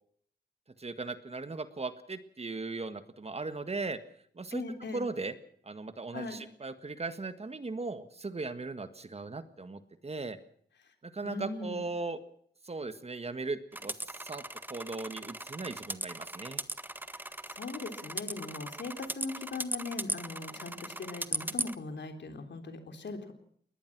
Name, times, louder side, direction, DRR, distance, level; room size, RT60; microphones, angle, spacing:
voice 1, 0.8-4.0 4.3-4.6 4.9-5.3 5.6-10.4 11.0-12.2 12.6-14.4 14.7-16.6, right 3 dB, 35° right, 11 dB, 1.7 m, -38 dB
voice 2, 4.5-5.0 6.1-6.4 11.2-11.9 17.1-23.3, left 3 dB, 75° left, 6 dB, 3.7 m, -40 dB
sound 1, 13.7-21.7, right 1 dB, 10° right, 1.1 m, -38 dB
22.0 x 19.0 x 6.1 m, 0.63 s
wide cardioid pair, 90°, 18 cm